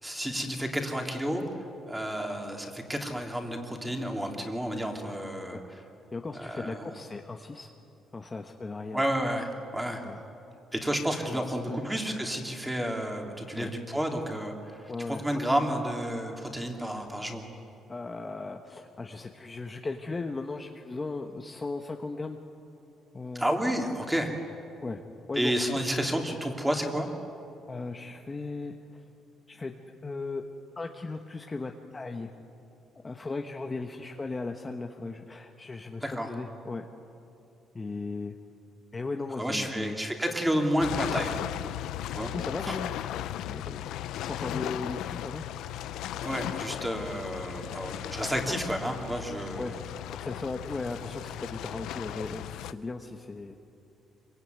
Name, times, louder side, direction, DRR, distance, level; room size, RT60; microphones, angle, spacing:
voice 1, 0.0-5.6 6.3-6.9 8.9-10.1 10.7-17.4 23.3-24.3 25.3-27.1 36.0-36.3 39.4-41.4 42.1-42.3 42.6-42.7 46.2-49.7, equal, 5° right, 2 dB, 3.1 m, -31 dB
voice 2, 6.1-7.7 8.1-9.0 10.0-10.2 11.1-11.9 13.6-13.7 14.9-15.3 17.9-22.4 23.1-23.4 24.8-25.0 25.3-25.9 27.7-29.0 29.5-29.8 30.0-30.4 30.8-32.3 33.0-36.9 37.7-38.3 38.9-40.0 42.3-42.9 43.5-43.9 44.2-45.8 48.0-48.5 49.1-49.3 49.6-49.8 50.1-53.5, left 3 dB, 20° left, 3 dB, 1.2 m, -37 dB
sound 1, 40.8-52.7, left 12 dB, 85° left, 0.6 m, -36 dB
26.0 x 23.5 x 9.5 m, 2.7 s
cardioid pair, 145°, 0 cm